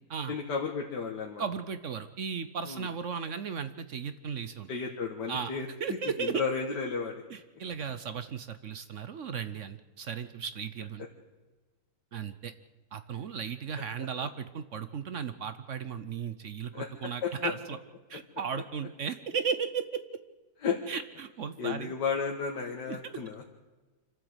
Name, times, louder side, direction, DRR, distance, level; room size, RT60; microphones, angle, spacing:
voice 1, 0.3-1.4 2.7-2.9 4.7-5.7 6.2-7.1 16.7-16.9 17.2-17.5 20.6-20.8 21.6-23.4, left 5 dB, 85° left, 1 dB, 2.1 m, -33 dB
voice 2, 1.4-4.7 5.3-5.5 5.8-6.4 7.3-11.0 12.1-12.5 12.9-17.8 18.1-20.0 20.9-21.9 22.9-23.2, right 6 dB, 55° right, 12 dB, 1.0 m, -35 dB
26.0 x 13.0 x 8.0 m, 1.2 s
omnidirectional pair, 1.8 m